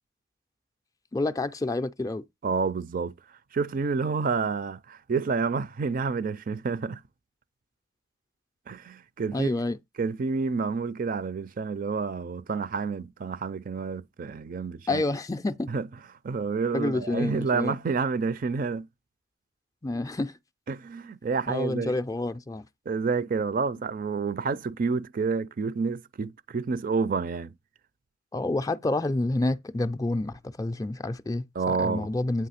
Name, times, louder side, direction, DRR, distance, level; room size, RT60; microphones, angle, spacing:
voice 1, 1.1-2.2 9.3-9.8 14.9-15.7 16.7-17.8 19.8-20.4 21.5-22.6 28.3-32.5, left 2 dB, 20° left, 0.4 m, -28 dB
voice 2, 2.4-3.1 3.5-7.0 8.7-9.5 10.0-15.0 15.7-15.9 16.2-18.9 20.7-22.0 22.9-27.5 31.6-32.1, right 4 dB, 45° right, 0.4 m, -29 dB
8.6 x 3.1 x 5.7 m
head